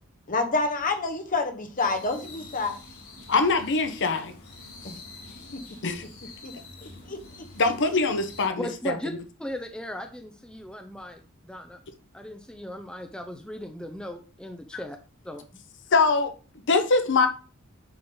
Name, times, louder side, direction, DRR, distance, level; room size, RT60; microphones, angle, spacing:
voice 1, 0.3-2.8 5.5-5.6 6.4-6.5 6.8-7.2, left 3 dB, 40° left, 1.2 m, -28 dB
sound 1, 1.8-8.5, left 2 dB, 80° left, 4.0 m, -47 dB
voice 2, 3.3-4.3 5.8-6.0 7.6-9.0 15.9-16.3 16.7-17.3, left 4 dB, 60° left, 0.9 m, -23 dB
voice 3, 8.6-9.1 9.4-11.8 12.1-15.0 15.2-15.5, equal, 5° left, 0.6 m, -37 dB
9.6 x 3.7 x 3.9 m
head